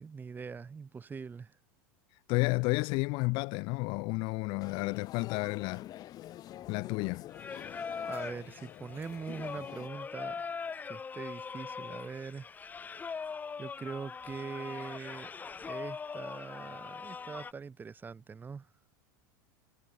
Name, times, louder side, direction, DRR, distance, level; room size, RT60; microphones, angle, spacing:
voice 1, 0.0-1.6 8.1-10.4 10.9-12.5 12.9-13.0 13.6-15.3 15.6-18.7, right 5 dB, 20° right, 4.5 m, -42 dB
voice 2, 2.3-5.9 6.7-7.3, left 28 dB, 55° left, 1.2 m, -31 dB
sound 1, 4.6-9.9, left 13 dB, 40° left, 2.1 m, -47 dB
Singing, 7.3-17.5, left 5 dB, 15° left, 0.8 m, -41 dB
supercardioid pair, 125°, 10 cm